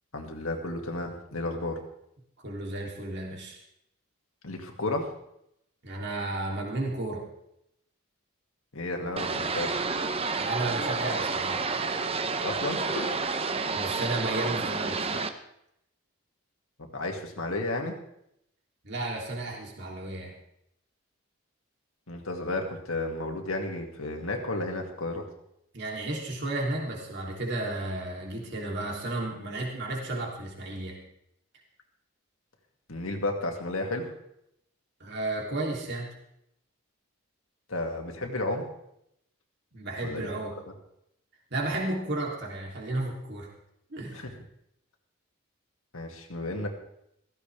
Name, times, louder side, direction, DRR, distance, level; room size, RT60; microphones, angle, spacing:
voice 1, 0.1-1.8 4.4-5.1 8.7-9.8 12.4-13.3 16.9-17.9 22.1-25.2 32.9-34.1 37.7-38.7 40.0-40.3 44.1-44.3 45.9-46.7, left 2 dB, 75° left, 2 dB, 2.3 m, -32 dB
voice 2, 2.4-3.6 5.8-7.2 10.4-11.6 13.7-15.3 18.8-20.3 25.7-31.0 35.0-36.1 39.7-40.5 41.5-43.5 43.9-44.3, right 2 dB, 50° right, -1 dB, 3.2 m, -33 dB
sound 1, 9.2-15.3, right 4 dB, 25° right, 0.8 m, -30 dB
16.0 x 15.0 x 3.5 m, 0.78 s
head